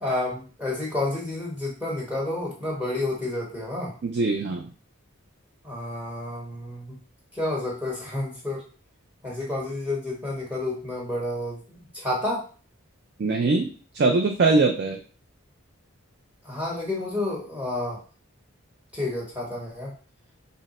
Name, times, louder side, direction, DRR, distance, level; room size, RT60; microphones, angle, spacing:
voice 1, 0.0-3.9 5.6-7.0 7.3-8.6 9.2-12.4 16.4-18.0 18.9-19.9, left 2 dB, 5° right, -3 dB, 0.9 m, -30 dB
voice 2, 4.0-4.7 13.2-13.7 13.9-15.0, right 3 dB, 50° right, 2 dB, 0.4 m, -22 dB
2.8 x 2.1 x 4.0 m, 0.39 s
head